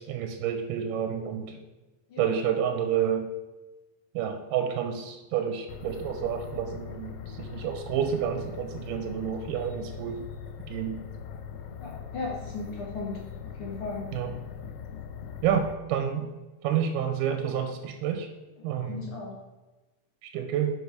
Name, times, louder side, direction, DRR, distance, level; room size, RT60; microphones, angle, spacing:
voice 1, 0.0-1.6 2.2-3.3 4.2-10.2 10.7-11.0 14.1-14.3 15.4-16.3 16.6-18.3 18.6-19.0 20.2-20.7, right 8 dB, 90° right, 6 dB, 2.2 m, -29 dB
voice 2, 2.1-2.4 11.8-14.1 18.6-19.4, left 3 dB, 60° left, -2 dB, 1.5 m, -37 dB
sound 1, 5.7-15.7, left 7 dB, 90° left, 2.2 m, -41 dB
5.3 x 5.1 x 4.6 m, 1.1 s
omnidirectional pair, 3.7 m